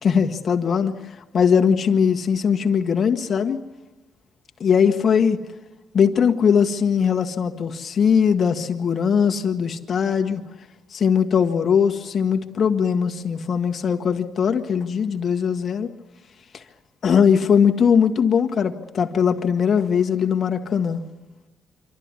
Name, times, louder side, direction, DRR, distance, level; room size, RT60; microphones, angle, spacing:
voice 1, 0.0-0.9 1.3-3.6 4.6-5.4 5.9-10.4 10.9-15.9 16.5-16.6 17.0-21.0, left 7 dB, 50° left, 5 dB, 1.7 m, -20 dB
26.5 x 13.0 x 9.7 m, 1.1 s
cardioid pair, 90°, 0 cm